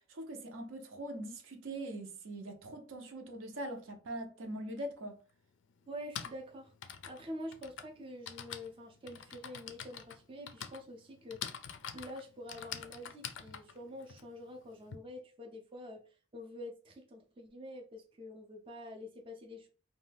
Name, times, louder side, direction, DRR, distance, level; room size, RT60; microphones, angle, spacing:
voice 1, 0.1-5.2, right 1 dB, 75° right, 0.6 m, -42 dB
Typing, 4.8-4.9 5.8-15.0, left 8 dB, 60° left, 0.3 m, -46 dB
voice 2, 5.9-11.4 11.9-16.0 16.3-19.7, left 1 dB, 25° right, 0.4 m, -47 dB
2.6 x 2.2 x 3.3 m
head